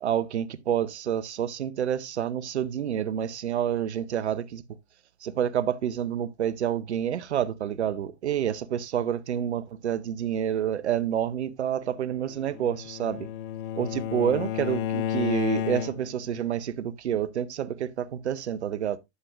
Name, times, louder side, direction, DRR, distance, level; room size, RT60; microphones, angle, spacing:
voice 1, 0.0-4.6 5.2-13.3 13.8-19.0, right 9 dB, 85° right, 0.8 m, -28 dB
Bowed string instrument, 12.3-16.3, left 10 dB, 50° left, 0.8 m, -32 dB
11.0 x 7.6 x 2.4 m
hypercardioid pair, 105°, 33 cm